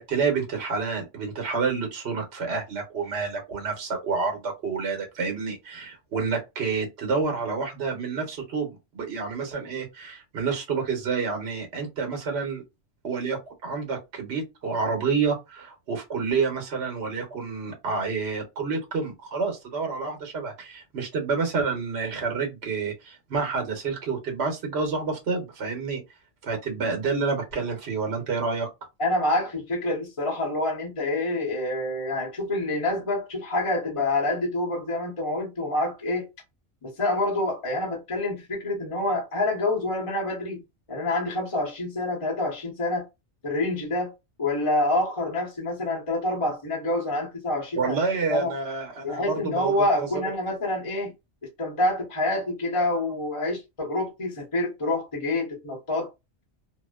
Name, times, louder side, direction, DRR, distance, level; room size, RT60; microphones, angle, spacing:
voice 1, 0.0-12.6 13.0-26.0 26.4-28.7 47.8-50.1, right 4 dB, 70° right, 1.1 m, -29 dB
voice 2, 29.0-36.3 36.8-40.6 40.9-43.1 43.4-44.1 44.4-48.0 48.3-48.5 49.0-51.1 51.6-56.1, left 2 dB, 30° left, 0.9 m, -27 dB
2.6 x 2.1 x 2.2 m
omnidirectional pair, 1.2 m